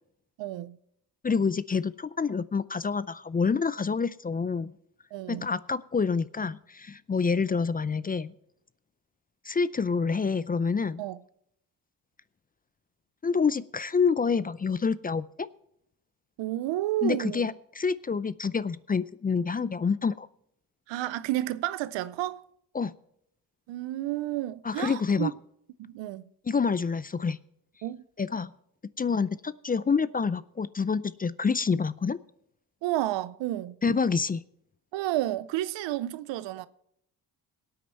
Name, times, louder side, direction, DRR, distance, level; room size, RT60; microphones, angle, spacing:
voice 1, 0.4-0.8 5.1-5.5 11.0-11.2 16.4-17.5 20.9-22.4 23.7-25.3 25.8-26.2 27.8-28.0 32.8-33.8 34.9-36.7, right 15 dB, 85° right, 0.6 m, -31 dB
voice 2, 1.2-4.7 5.3-8.3 9.4-11.0 13.2-15.5 17.0-20.3 22.7-22.9 24.6-25.3 26.5-27.4 28.2-28.5 29.0-32.2 33.8-34.4, left 5 dB, 20° left, 0.4 m, -27 dB
18.0 x 8.7 x 4.4 m
cardioid pair, 70°, 43 cm